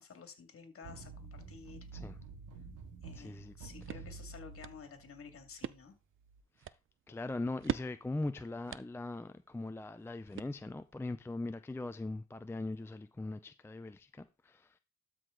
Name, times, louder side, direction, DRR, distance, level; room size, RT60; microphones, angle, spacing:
voice 1, 0.0-1.9 3.0-6.0, left 6 dB, 45° left, 2.3 m, -52 dB
sound 1, 0.8-5.8 6.2-6.4, right 4 dB, 80° right, 2.0 m, -49 dB
voice 2, 3.1-3.5 6.6-6.7 7.1-14.8, left 2 dB, 10° left, 0.5 m, -40 dB
sound 2, 3.4-11.0, right 10 dB, 45° right, 0.5 m, -46 dB
12.5 x 4.9 x 3.8 m
cardioid pair, 90°, 30 cm